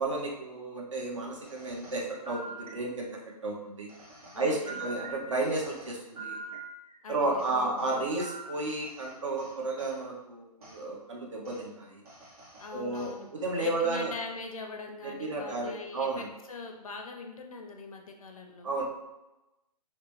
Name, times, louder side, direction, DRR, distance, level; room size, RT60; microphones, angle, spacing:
voice 1, 0.0-3.1 3.4-3.9 4.3-6.4 7.1-12.0 12.7-14.1 15.0-16.3 18.6-18.8, right 2 dB, 50° right, -1 dB, 0.7 m, -32 dB
sound 1, 1.4-3.2 3.9-7.0 7.4-10.0 10.6-10.8 11.4-11.6 12.0-13.2 13.7-14.3, right 3 dB, 65° right, 1.1 m, -45 dB
voice 2, 4.3-4.8 7.0-7.8 12.6-18.7, left 3 dB, 60° left, 3 dB, 0.5 m, -42 dB
2.9 x 2.1 x 3.0 m, 0.98 s
hypercardioid pair, 170°, 21 cm